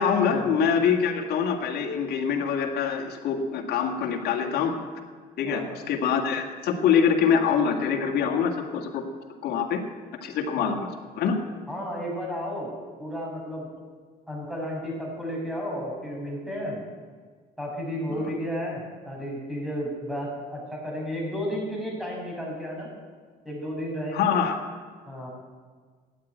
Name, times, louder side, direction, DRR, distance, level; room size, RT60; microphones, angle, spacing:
voice 1, 0.0-4.8 5.4-9.0 9.4-9.8 10.2-10.9 11.1-11.3 18.1-18.2 24.1-24.6, left 7 dB, 70° left, 2 dB, 2.0 m, -24 dB
voice 2, 11.7-12.7 13.0-13.7 14.3-16.8 17.6-22.9 23.4-24.3 25.1-25.3, equal, ahead, -2 dB, 6.0 m, -33 dB
15.0 x 9.6 x 9.2 m, 1.5 s
cardioid pair, 110°, 17 cm